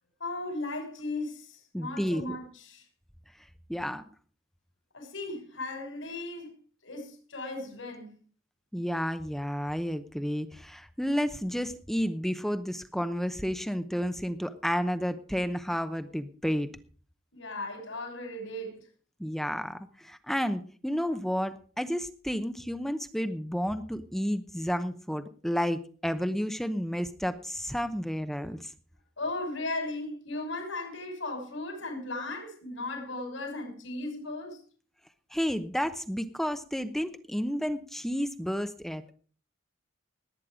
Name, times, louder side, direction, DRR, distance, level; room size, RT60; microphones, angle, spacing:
voice 1, 0.2-2.9 4.9-6.5 6.8-8.2 17.3-18.9 29.2-34.6, left 2 dB, 75° left, 6.2 m, -36 dB
voice 2, 1.7-2.4 3.7-4.0 8.7-16.7 19.2-28.7 35.3-39.1, equal, ahead, 0.8 m, -31 dB
19.0 x 9.3 x 5.0 m
head